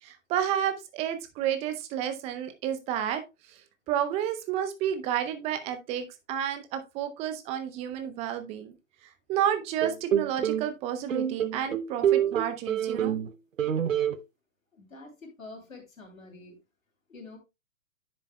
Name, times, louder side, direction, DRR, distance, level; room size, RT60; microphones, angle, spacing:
voice 1, 0.0-3.2 3.5-8.7 9.0-13.2, right 10 dB, 15° right, 9 dB, 0.6 m, -31 dB
sound 1, 9.8-10.7 11.1-13.3 13.6-14.2, right 9 dB, 70° right, 0.9 m, -26 dB
voice 2, 14.7-16.6 17.1-17.4, left 3 dB, 80° left, 1 dB, 3.3 m, -47 dB
10.0 x 7.3 x 2.2 m, 0.25 s
figure-of-eight pair, 120°, 40 cm